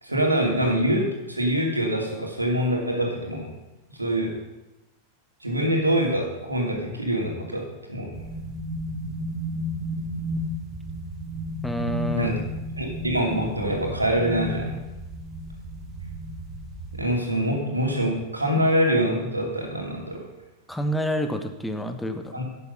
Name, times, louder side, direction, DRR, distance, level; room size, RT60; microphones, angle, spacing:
voice 1, 0.0-3.5 4.0-4.3 5.4-7.6 7.9-8.1 12.1-12.4 12.8-14.8 17.0-20.2 22.3-22.4, equal, 85° right, 0 dB, 2.8 m, -24 dB
sound 1, 8.1-17.0, equal, 15° right, 2.9 m, -33 dB
voice 2, 11.6-12.3 20.7-22.3, equal, 5° left, 7 dB, 1.3 m, -28 dB
12.0 x 9.1 x 5.5 m, 0.98 s
figure-of-eight pair, 90°, 0 cm